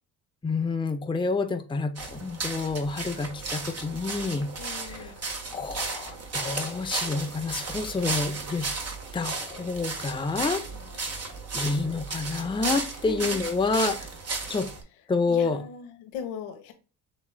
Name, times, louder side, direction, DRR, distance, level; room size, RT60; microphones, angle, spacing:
voice 1, 0.4-4.5 4.8-5.1 5.5-8.7 9.1-10.6 11.0-11.1 11.5-14.1 14.5-14.7 15.1-15.6, left 4 dB, 10° left, 6 dB, 0.7 m, -28 dB
sound 1, 2.0-14.8, right 3 dB, 30° right, 1.4 m, -34 dB
voice 2, 4.6-5.2 10.7-11.4 13.0-13.4 15.3-16.7, left 6 dB, 80° left, 4 dB, 1.3 m, -40 dB
7.2 x 3.1 x 2.3 m, 0.33 s
supercardioid pair, 80°, 47 cm